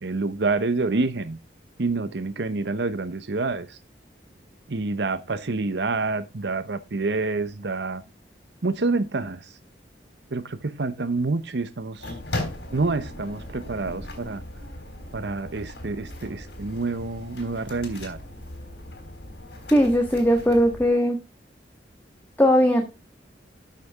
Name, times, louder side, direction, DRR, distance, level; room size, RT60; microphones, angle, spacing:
voice 1, 0.0-1.4 1.8-3.8 4.7-8.0 8.6-9.5 10.3-12.1 12.7-14.4 15.1-18.2, right 3 dB, 70° right, 12 dB, 0.8 m, -27 dB
sound 1, 12.0-20.9, left 1 dB, 70° left, 3.7 m, -38 dB
voice 2, 19.7-21.2 22.4-22.8, equal, 10° left, 3 dB, 1.5 m, -19 dB
12.5 x 6.6 x 3.5 m, 0.27 s
head